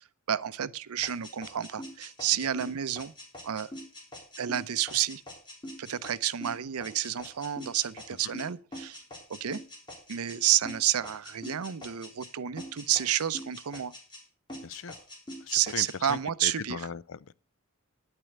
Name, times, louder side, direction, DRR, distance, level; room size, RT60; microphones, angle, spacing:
voice 1, 0.0-3.1 3.4-3.7 4.4-5.2 5.8-9.0 9.3-9.6 10.1-13.9 15.5-16.9, right 11 dB, 90° right, 0.6 m, -30 dB
sound 1, 1.0-10.4 10.6-12.3 12.6-14.2 14.5-16.2, left 1 dB, 20° left, 3.2 m, -44 dB
voice 2, 14.6-14.9 15.4-17.3, left 6 dB, 60° left, 0.5 m, -38 dB
9.8 x 9.0 x 6.5 m
head